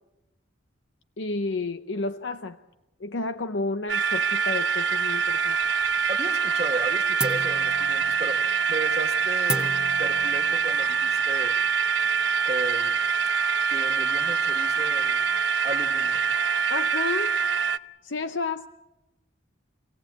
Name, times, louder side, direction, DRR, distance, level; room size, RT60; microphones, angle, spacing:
voice 1, 1.2-2.6 3.0-5.6 16.7-17.4 18.0-18.7, left 3 dB, 65° left, 9 dB, 0.8 m, -31 dB
sound 1, 3.9-17.8, right 6 dB, 65° right, 0.8 m, -24 dB
sound 2, 5.2-6.1 6.4-6.8 7.2-12.3, right 2 dB, 5° right, 1.0 m, -36 dB
voice 2, 6.1-8.4 8.7-11.5 12.4-13.0 13.7-16.2, right 2 dB, 35° right, 5 dB, 1.7 m, -35 dB
26.5 x 17.5 x 8.6 m, 0.98 s
head